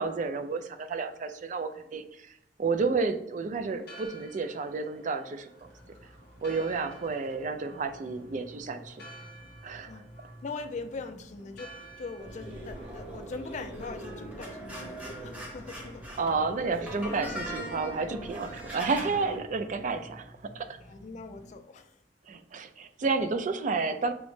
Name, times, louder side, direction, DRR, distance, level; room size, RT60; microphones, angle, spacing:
voice 1, 0.0-5.5 6.4-9.0 9.6-9.9 16.2-20.7 22.3-24.1, right 4 dB, 45° right, 0.4 m, -31 dB
Church bell, 3.7-15.2, right 1 dB, 60° left, 0.7 m, -53 dB
sound 1, 5.6-21.6, equal, 75° right, 1.2 m, -53 dB
voice 2, 10.4-16.1 20.8-22.0, left 4 dB, 40° left, 0.4 m, -41 dB
sound 2, 12.2-19.4, right 1 dB, 5° right, 0.8 m, -40 dB
6.0 x 2.0 x 3.1 m
head